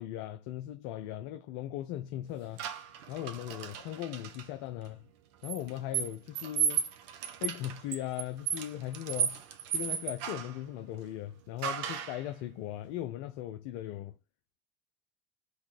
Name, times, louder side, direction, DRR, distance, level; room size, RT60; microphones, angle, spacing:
voice 1, 0.0-2.6 3.1-5.0 5.4-6.9 7.4-9.4 9.7-14.1, left 13 dB, 50° left, 0.5 m, -38 dB
sound 1, 2.6-4.5 5.4-10.6 11.6-12.2, right 8 dB, 50° right, 0.9 m, -34 dB
3.7 x 3.0 x 4.4 m
figure-of-eight pair, 65°, 32 cm